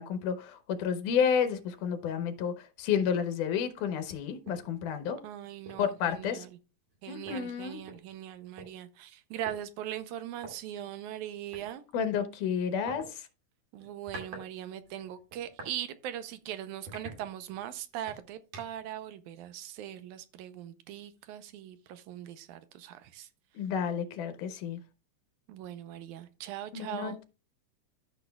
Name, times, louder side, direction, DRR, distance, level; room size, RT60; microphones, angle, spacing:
voice 1, 0.0-5.2 5.8-6.5 7.1-7.8 11.9-13.2 23.6-24.8 26.7-27.2, left 7 dB, 80° left, 2.5 m, -31 dB
sound 1, 4.4-4.7 5.1-5.2 5.7-5.9 6.9-7.0 7.3-8.7 9.5-9.6 10.4-10.5 11.5-11.7 12.9-13.1 13.8-14.5 14.8-15.8 16.2-16.4 16.9-17.7 18.1-18.9, right 2 dB, 55° right, 3.3 m, -46 dB
voice 2, 5.2-6.5 7.0-11.8 13.7-23.3 25.5-27.2, right 11 dB, 80° right, 2.0 m, -40 dB
13.5 x 6.2 x 2.3 m
omnidirectional pair, 3.6 m